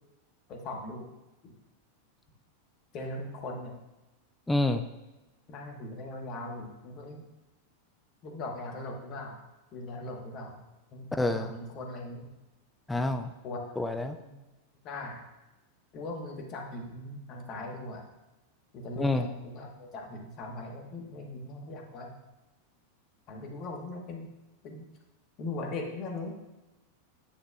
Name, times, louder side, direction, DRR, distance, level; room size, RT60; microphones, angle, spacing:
voice 1, 0.5-1.1 1.4-1.5 2.9-3.7 5.5-7.3 8.2-9.4 9.7-10.6 10.9-12.3 13.4-13.6 14.0-14.3 14.8-15.2 15.9-18.1 18.7-22.1 23.3-24.3 24.6-24.9 25.4-26.3, left 2 dB, 35° left, 2 dB, 1.3 m, -39 dB
voice 2, 4.5-4.8 11.1-11.5 12.9-13.3 13.8-14.2 19.0-19.2, left 2 dB, 10° left, 8 dB, 0.4 m, -27 dB
9.4 x 6.6 x 2.4 m, 1.0 s
figure-of-eight pair, 90°, 0 cm